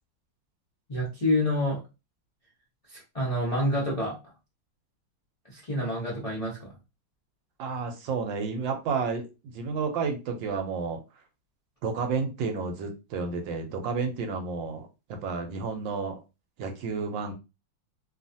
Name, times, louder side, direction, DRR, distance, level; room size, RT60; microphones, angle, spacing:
voice 1, 0.9-1.8 2.9-4.1 5.5-6.7, left 1 dB, 65° left, -5 dB, 0.3 m, -28 dB
voice 2, 7.6-11.0 11.8-14.9 15.2-16.2 16.6-17.3, right 5 dB, 75° right, 5 dB, 1.3 m, -31 dB
3.1 x 2.4 x 2.6 m, 0.27 s
omnidirectional pair, 2.2 m